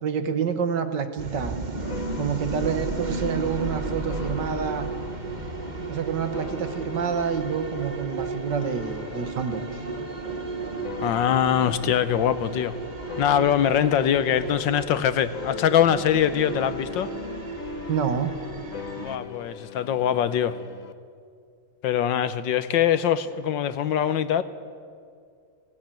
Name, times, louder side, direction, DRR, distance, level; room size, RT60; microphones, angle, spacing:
voice 1, 0.0-1.5 2.2-4.9 5.9-9.6 17.9-18.3, right 7 dB, 60° right, 9 dB, 1.7 m, -28 dB
sound 1, 1.2-19.2, right 3 dB, 25° right, 1.1 m, -34 dB
sound 2, 1.8-16.2 16.5-20.9, left 8 dB, 55° left, 1.0 m, -41 dB
voice 2, 11.0-12.7 13.2-17.1 19.0-20.6 21.8-24.4, left 9 dB, 70° left, 13 dB, 1.3 m, -23 dB
18.5 x 17.5 x 8.9 m, 2.2 s
omnidirectional pair, 2.3 m